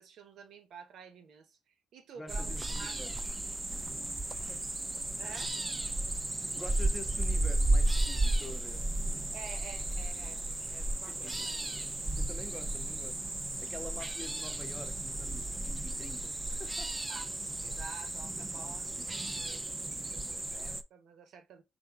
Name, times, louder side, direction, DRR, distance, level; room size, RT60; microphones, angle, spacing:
voice 1, 0.0-2.9 5.2-5.5 9.3-10.4 10.7-11.5 17.1-21.6, right 6 dB, 70° right, 0.8 m, -50 dB
voice 2, 2.2-3.1 4.3-4.6 6.6-9.1 11.1-13.2 13.6-16.9 18.6-19.1, left 1 dB, 15° left, 0.8 m, -47 dB
sound 1, 2.3-20.8, right 2 dB, 15° right, 0.4 m, -34 dB
3.5 x 2.6 x 3.5 m
cardioid pair, 90°, 0 cm